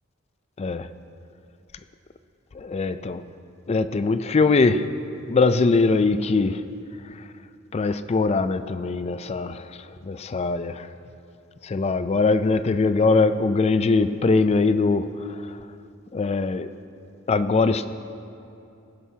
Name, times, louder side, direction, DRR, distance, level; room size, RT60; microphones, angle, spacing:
voice 1, 0.6-0.9 2.5-3.3 3.7-4.9 5.3-6.6 7.7-10.9 11.6-15.1 15.5-15.6 16.1-16.7 17.3-17.9, left 3 dB, 30° left, 12 dB, 0.4 m, -22 dB
18.5 x 11.0 x 2.8 m, 2.6 s
head